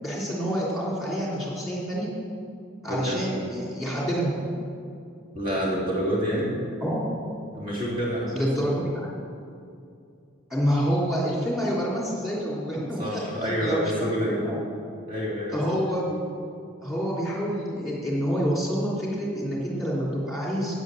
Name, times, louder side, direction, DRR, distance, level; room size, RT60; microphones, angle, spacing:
voice 1, 0.0-2.1 2.8-4.5 6.8-7.1 8.3-9.1 10.5-13.2 13.6-14.6 15.5-16.3 16.8-20.8, equal, ahead, -5 dB, 3.2 m, -27 dB
voice 2, 5.3-6.5 7.5-8.7 13.0-14.4 15.1-15.6, equal, 40° right, -5 dB, 3.0 m, -28 dB
9.5 x 9.4 x 7.9 m, 2.5 s
head